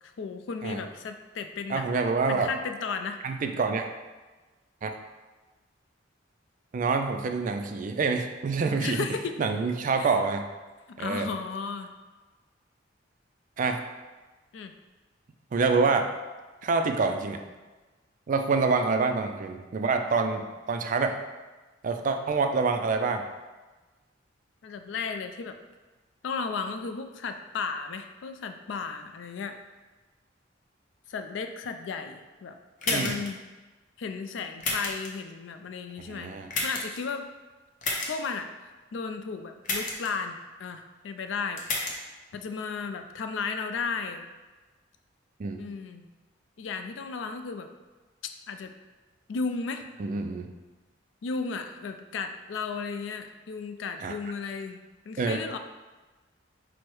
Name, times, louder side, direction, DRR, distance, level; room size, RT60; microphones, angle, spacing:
voice 1, 0.2-1.8 2.3-3.2 8.8-9.4 10.0-10.1 10.9-11.9 14.5-14.7 24.6-25.6 26.2-29.6 31.1-33.4 34.0-36.3 36.6-37.3 38.1-38.5 38.9-40.3 40.6-41.6 42.3-44.2 45.6-46.1 46.6-47.7 48.5-48.7 49.3-49.8 51.2-55.6, left 5 dB, 70° left, 7 dB, 0.4 m, -34 dB
voice 2, 1.7-2.5 3.2-3.9 4.8-5.0 6.7-9.0 9.4-10.5 11.0-11.3 13.6-13.8 15.5-16.1 16.6-17.4 18.3-21.2 21.8-23.2 32.9-33.2 36.0-36.5 45.4-45.6 50.0-50.5 54.0-54.2 55.2-55.4, right 4 dB, 40° right, 6 dB, 0.3 m, -26 dB
sound 1, 32.8-33.3 34.6-35.1 36.5-37.0 37.8-38.1 39.6-40.1 41.6-41.9, left 2 dB, 40° left, 0.7 m, -29 dB
4.6 x 2.1 x 4.5 m, 1.2 s
head